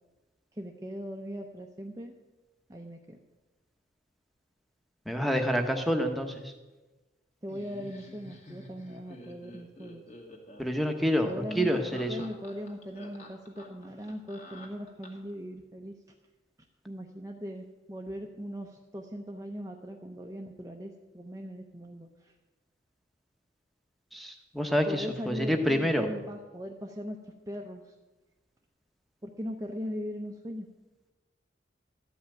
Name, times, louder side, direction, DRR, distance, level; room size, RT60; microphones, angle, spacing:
voice 1, 0.5-2.1 2.7-3.2 7.4-10.0 11.2-15.9 16.8-22.3 24.9-27.9 29.2-30.7, equal, 15° right, 2 dB, 0.6 m, -39 dB
voice 2, 5.1-6.5 10.6-12.2 24.1-26.1, equal, ahead, 5 dB, 1.0 m, -28 dB
Laughter, 7.5-15.3, left 1 dB, 35° left, 1.9 m, -49 dB
13.0 x 5.7 x 8.9 m, 1.2 s
head